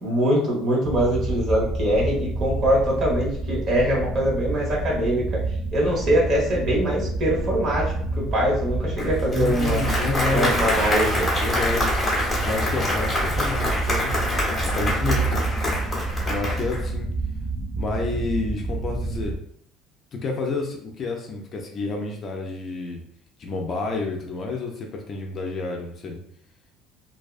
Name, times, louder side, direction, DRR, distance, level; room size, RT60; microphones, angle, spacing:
voice 1, 0.0-5.4 5.7-9.8 10.3-11.2, equal, 40° right, -4 dB, 1.1 m, -23 dB
sound 1, 0.8-19.4, right 2 dB, 20° right, 0.6 m, -28 dB
Applause, 9.0-16.9, left 1 dB, 15° left, 1.1 m, -26 dB
voice 2, 9.3-10.7 11.3-12.0 12.4-15.8 16.2-17.1 17.8-19.4 20.1-23.0 23.4-26.2, left 3 dB, 40° left, 2 dB, 0.5 m, -29 dB
2.6 x 2.2 x 2.4 m, 0.66 s
cardioid pair, 120°, 0 cm